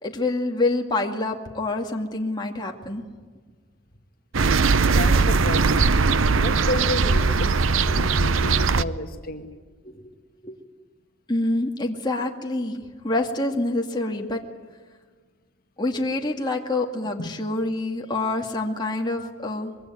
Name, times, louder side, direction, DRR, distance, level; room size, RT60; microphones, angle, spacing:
voice 1, 0.0-3.0 9.8-10.0 10.4-10.6 11.3-14.4 15.8-19.7, left 2 dB, 20° left, 1 dB, 2.2 m, -26 dB
sound 1, 4.3-8.8, right 4 dB, 80° right, 0.8 m, -20 dB
voice 2, 4.7-6.0 6.3-9.5 17.2-17.3 19.2-19.3, left 2 dB, 45° left, 5 dB, 2.1 m, -32 dB
24.5 x 22.5 x 9.3 m, 1.5 s
head